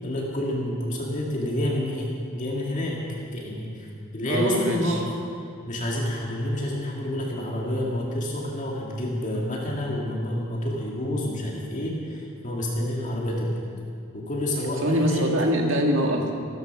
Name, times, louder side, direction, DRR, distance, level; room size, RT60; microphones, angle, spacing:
voice 1, 0.0-5.1 5.7-13.5 14.1-15.3, left 1 dB, 40° left, -3 dB, 2.1 m, -28 dB
voice 2, 4.2-5.0 14.8-16.3, equal, 70° right, 2 dB, 1.9 m, -23 dB
14.5 x 13.5 x 6.0 m, 2.3 s
head